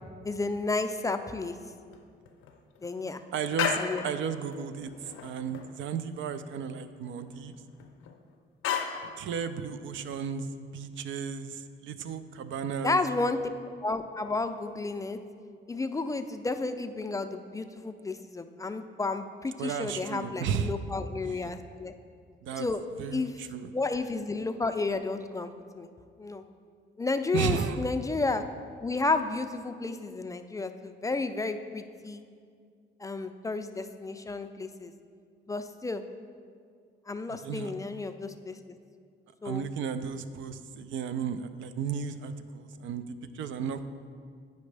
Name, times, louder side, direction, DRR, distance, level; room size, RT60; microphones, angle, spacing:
voice 1, 0.2-1.6 2.8-3.2 3.8-4.0 12.8-13.5 13.8-15.2 15.7-21.9 22.6-22.8 23.1-23.3 23.7-25.9 26.2-26.4 27.0-28.4 28.8-32.2 33.0-34.9 35.5-36.0 37.1-38.6 39.4-39.6, left 3 dB, 15° left, 8 dB, 0.3 m, -32 dB
sound 1, 1.9-2.0 2.3-2.9 3.3-4.2 4.5-4.6 4.8-5.7 6.0-6.1 6.3-6.4 7.2-8.1 8.6-9.1, left 7 dB, 90° left, 0.6 m, -33 dB
voice 2, 3.3-7.6 9.2-13.0 19.6-20.7 21.4-21.5 22.4-22.7 23.0-23.7 27.3-27.8 37.4-37.7 39.4-43.9, right 7 dB, 75° right, 11 dB, 0.4 m, -34 dB
9.4 x 5.2 x 3.3 m, 2.1 s
cardioid pair, 90°, 20 cm